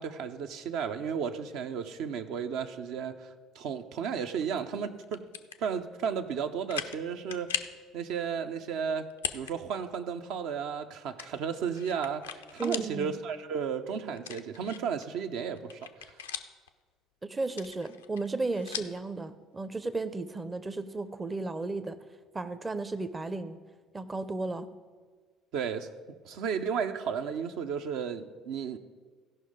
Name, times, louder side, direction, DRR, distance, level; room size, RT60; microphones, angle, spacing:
voice 1, 0.0-5.2 5.6-7.6 7.9-9.1 9.3-16.1 25.5-25.9 26.2-28.8, right 7 dB, 65° right, 8 dB, 0.6 m, -34 dB
sound 1, 5.0-5.6 6.1-6.2 6.7-7.0 7.3-7.8 9.1-9.5 9.9-10.0 11.2-12.9 13.3-13.4 14.2-15.0 15.5-16.7 17.4-19.0, left 8 dB, 85° left, 0.4 m, -38 dB
voice 2, 12.6-13.2 17.2-22.0 22.3-23.6 23.9-24.7, right 3 dB, 25° right, 10 dB, 0.6 m, -34 dB
16.0 x 5.5 x 5.0 m, 1.5 s
hypercardioid pair, 55°, 0 cm